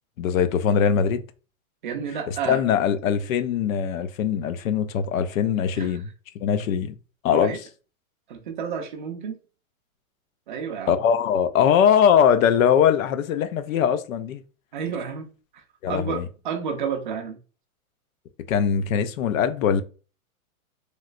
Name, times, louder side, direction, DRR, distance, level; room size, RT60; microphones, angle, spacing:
voice 1, 0.2-1.2 2.5-6.1 6.4-6.9 7.2-7.6 10.9-14.4 15.8-16.3 18.5-19.8, left 8 dB, 70° left, 0.5 m, -21 dB
voice 2, 1.8-2.6 5.8-6.0 7.3-7.6 8.3-9.4 10.5-11.0 14.7-15.3 15.5-17.4, right 7 dB, 35° right, 0.4 m, -31 dB
3.1 x 3.0 x 2.4 m
hypercardioid pair, 155°, 43 cm